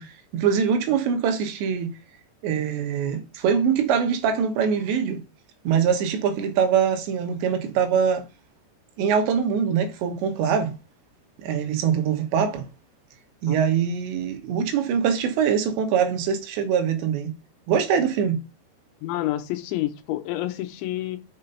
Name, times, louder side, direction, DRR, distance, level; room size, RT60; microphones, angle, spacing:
voice 1, 0.0-1.9 2.4-5.2 5.6-8.2 9.0-10.7 11.4-12.7 13.4-17.3 17.7-18.4, right 7 dB, 80° right, 3.4 m, -23 dB
voice 2, 19.0-21.2, left 15 dB, 90° left, 3.2 m, -28 dB
6.6 x 5.9 x 5.6 m
omnidirectional pair, 5.3 m